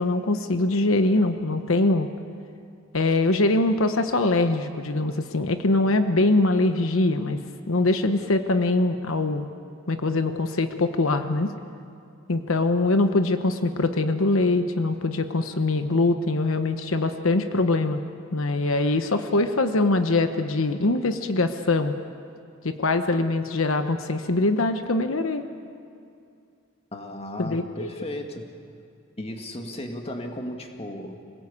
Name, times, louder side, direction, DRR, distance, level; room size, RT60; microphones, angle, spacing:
voice 1, 0.0-2.1 2.9-7.4 7.7-9.5 9.9-11.5 12.3-18.0 18.3-21.9 22.6-25.4 27.4-28.1, left 2 dB, 85° left, 8 dB, 1.1 m, -23 dB
voice 2, 26.9-28.5 29.2-31.2, left 1 dB, 30° left, 3 dB, 2.0 m, -35 dB
26.5 x 18.0 x 8.5 m, 2.4 s
head